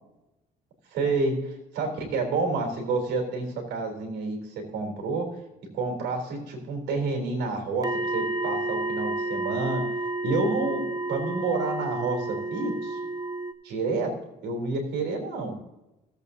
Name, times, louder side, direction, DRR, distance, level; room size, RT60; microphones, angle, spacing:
voice 1, 0.9-5.3 5.7-9.8 10.2-10.8 11.1-13.0 13.6-14.1 14.4-15.5, right 3 dB, 85° right, 3 dB, 3.6 m, -29 dB
sound 1, 7.8-13.5, right 2 dB, 20° right, 0.8 m, -30 dB
16.5 x 8.3 x 2.8 m, 0.98 s
cardioid pair, 110°, 17 cm